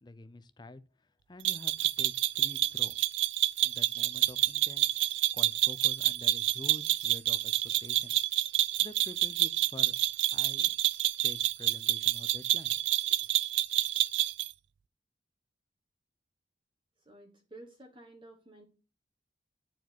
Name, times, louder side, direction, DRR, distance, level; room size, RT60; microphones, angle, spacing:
voice 1, 0.0-0.8 1.3-3.0 3.6-8.1 8.8-9.9 10.3-10.7 11.2-12.7 13.1-13.2, left 2 dB, 25° left, 0.5 m, -48 dB
sound 1, 1.4-14.5, right 14 dB, 80° right, 0.4 m, -28 dB
voice 2, 17.0-18.7, right 1 dB, 30° right, 1.3 m, -52 dB
9.0 x 4.8 x 6.0 m
head